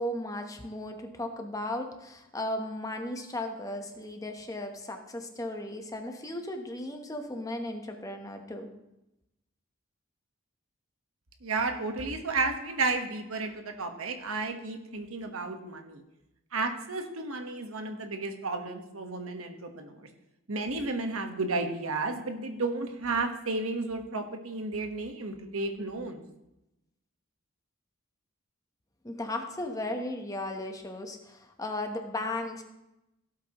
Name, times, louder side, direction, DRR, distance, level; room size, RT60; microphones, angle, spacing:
voice 1, 0.0-8.7 29.0-32.6, left 1 dB, 15° left, 4 dB, 1.0 m, -36 dB
voice 2, 11.4-16.0 16.5-20.1 20.5-26.2, right 3 dB, 90° right, 5 dB, 1.4 m, -32 dB
16.5 x 8.2 x 3.1 m, 0.91 s
head